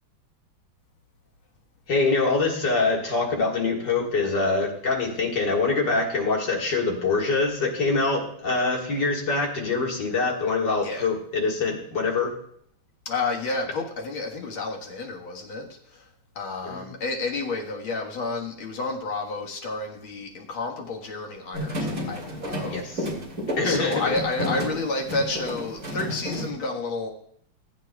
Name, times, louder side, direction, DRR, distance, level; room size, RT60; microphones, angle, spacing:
voice 1, 1.9-12.3 16.6-16.9 22.6-23.1 23.5-24.1, left 3 dB, 60° left, -1 dB, 2.5 m, -24 dB
voice 2, 13.1-16.1 16.4-22.8 23.6-27.1, left 3 dB, 85° left, 0 dB, 2.4 m, -30 dB
sound 1, 21.5-26.5, equal, 40° right, 3.0 m, -31 dB
18.5 x 9.1 x 2.3 m, 0.67 s
omnidirectional pair, 2.2 m